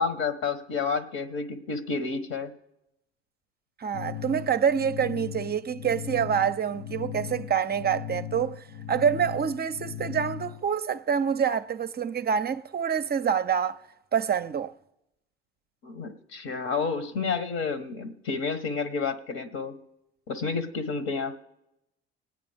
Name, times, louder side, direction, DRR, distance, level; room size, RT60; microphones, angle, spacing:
voice 1, 0.0-2.5 15.8-19.7 20.3-21.4, left 4 dB, 55° left, 1.4 m, -30 dB
voice 2, 3.8-13.8 14.1-14.7, right 7 dB, 30° right, 0.6 m, -26 dB
sound 1, 3.9-10.7, left 10 dB, 70° left, 0.9 m, -38 dB
25.5 x 9.4 x 3.5 m
hypercardioid pair, 65°, 32 cm